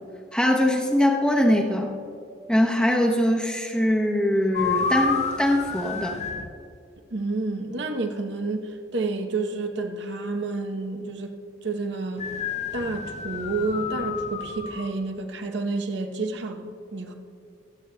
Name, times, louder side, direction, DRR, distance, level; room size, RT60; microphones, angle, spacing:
voice 1, 0.3-1.9 2.5-6.2, left 1 dB, 5° left, 0.8 m, -22 dB
sound 1, 4.5-6.5 12.2-14.9, left 6 dB, 35° left, 0.4 m, -30 dB
voice 2, 7.1-12.3 12.7-17.1, right 3 dB, 65° right, 0.8 m, -30 dB
24.5 x 8.2 x 2.2 m
head